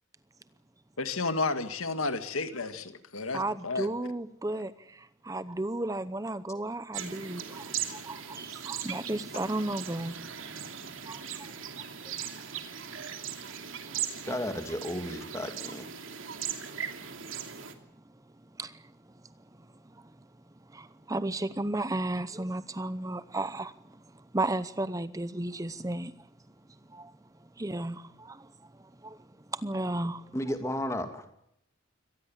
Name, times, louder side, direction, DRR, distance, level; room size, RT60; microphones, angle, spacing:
voice 1, 1.0-3.9 4.5-4.7, left 3 dB, 85° left, 2.0 m, -32 dB
voice 2, 3.3-10.2 11.0-11.5 14.2-14.4 18.6-18.8 20.7-23.7 24.3-26.1 26.9-27.1 27.6-28.5 28.8-29.2 29.5-30.3, right 2 dB, 15° right, 0.8 m, -34 dB
sound 1, 6.9-17.7, right 8 dB, 75° right, 2.7 m, -39 dB
voice 3, 14.3-15.9 30.3-31.3, left 1 dB, 15° left, 2.6 m, -33 dB
24.5 x 18.5 x 7.2 m
head